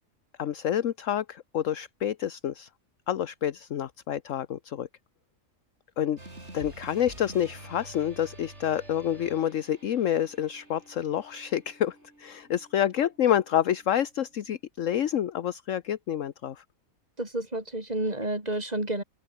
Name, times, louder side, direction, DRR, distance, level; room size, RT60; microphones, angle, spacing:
voice 1, 0.4-2.7 3.1-4.9 6.0-6.2 6.5-16.6, left 10 dB, 65° left, 1.2 m, -28 dB
sound 1, 6.2-14.5, right 2 dB, 50° right, 6.2 m, -49 dB
voice 2, 17.2-19.0, right 1 dB, 25° right, 3.5 m, -30 dB
open air
omnidirectional pair, 1.5 m